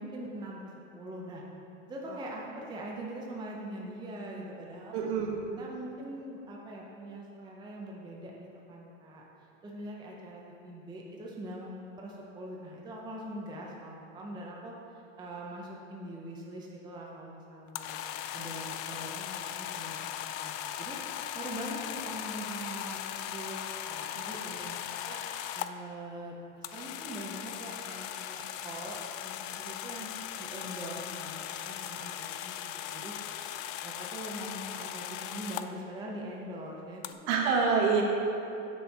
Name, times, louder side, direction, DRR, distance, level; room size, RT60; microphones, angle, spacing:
voice 1, 0.0-1.4 1.8-5.1 5.6-9.2 9.6-14.7 15.2-18.0 18.3-21.0 21.3-24.4 25.0-25.2 25.5-30.1 30.4-33.4 33.8-37.3 37.8-38.0, right 1 dB, 10° right, -2 dB, 0.6 m, -42 dB
voice 2, 4.9-5.6 24.1-24.7 37.3-38.0, right 5 dB, 60° right, 0 dB, 1.4 m, -28 dB
sound 1, 17.7-25.7 26.6-35.7 37.0-37.1, left 11 dB, 70° left, 0.5 m, -38 dB
6.8 x 4.6 x 5.3 m, 2.9 s
supercardioid pair, 125°, 42 cm